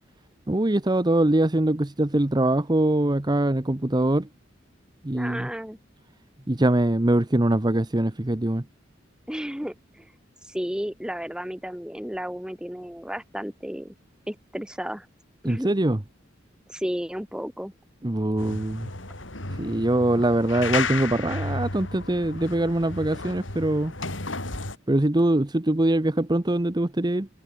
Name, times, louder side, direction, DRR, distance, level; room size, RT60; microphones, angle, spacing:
voice 1, 0.5-4.3 5.0-5.5 6.5-8.6 15.4-16.0 18.0-18.9 19.5-23.9 24.9-27.3, right 1 dB, 20° right, 0.9 m, -23 dB
voice 2, 5.1-5.8 9.3-10.1 10.5-13.9 14.3-15.1 15.4-15.7 16.7-17.7, equal, 5° right, 1.9 m, -33 dB
sound 1, 18.4-24.8, left 3 dB, 75° left, 5.7 m, -33 dB
head